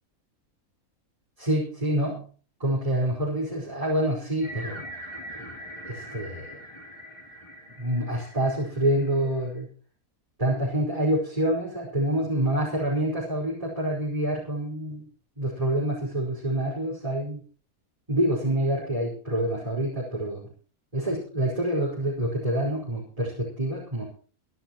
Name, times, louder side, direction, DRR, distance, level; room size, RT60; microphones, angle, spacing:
voice 1, 1.4-2.2 2.6-4.8 5.8-6.6 7.8-9.7 10.4-15.1 15.4-17.4 18.1-20.5 20.9-24.0, right 1 dB, 25° right, -3 dB, 5.3 m, -27 dB
sound 1, 4.4-9.6, right 1 dB, 20° left, 3.5 m, -42 dB
25.5 x 12.0 x 3.1 m, 0.40 s
omnidirectional pair, 1.5 m